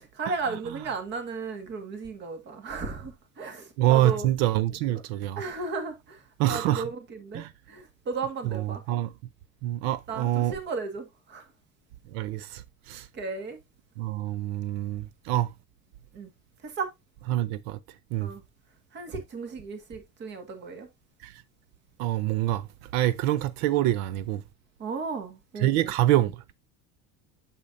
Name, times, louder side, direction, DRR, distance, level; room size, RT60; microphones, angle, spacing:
voice 1, 0.1-4.3 5.4-8.8 10.1-11.4 13.1-13.6 16.1-16.3 16.6-16.9 18.2-18.4 18.9-20.9 24.8-25.9, right 4 dB, 35° right, 1.7 m, -35 dB
voice 2, 3.8-5.4 6.4-6.9 7.3-7.5 8.5-9.1 9.6-10.5 12.1-12.6 12.9-13.1 14.0-15.5 17.3-17.8 18.1-18.3 21.2-21.3 22.0-22.7 22.9-24.4 25.6-26.5, right 14 dB, 80° right, 0.6 m, -26 dB
8.4 x 7.3 x 2.6 m
cardioid pair, 170°, 32 cm